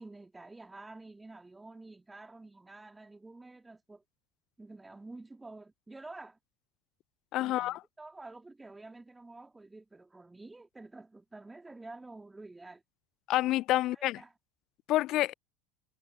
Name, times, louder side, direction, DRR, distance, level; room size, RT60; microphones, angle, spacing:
voice 1, 0.0-4.0 4.6-6.4 7.4-12.8 13.9-14.3, right 2 dB, 10° right, 3.1 m, -49 dB
voice 2, 7.3-7.8 13.3-14.2 14.9-15.3, left 16 dB, 45° left, 0.6 m, -28 dB
figure-of-eight pair, 75°, 0 cm